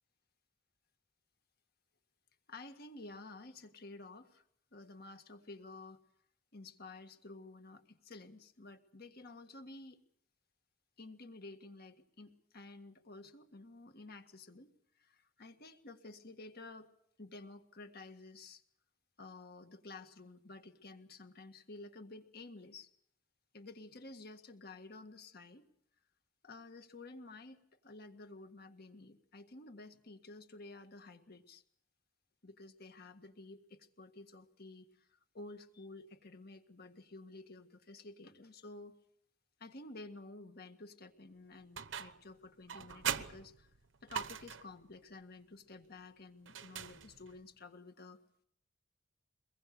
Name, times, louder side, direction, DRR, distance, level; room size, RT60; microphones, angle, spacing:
voice 1, 2.5-4.4 4.7-6.0 6.5-10.0 11.0-14.7 15.0-16.9 17.2-18.6 19.2-22.9 23.5-25.7 26.4-31.6 32.4-39.0 39.6-43.7 44.0-48.2, left 2 dB, 55° left, 7 dB, 1.7 m, -52 dB
sound 1, 41.8-42.3 42.7-44.8 46.5-47.4, right 8 dB, 75° right, 1.0 m, -41 dB
24.0 x 21.0 x 6.8 m, 0.71 s
head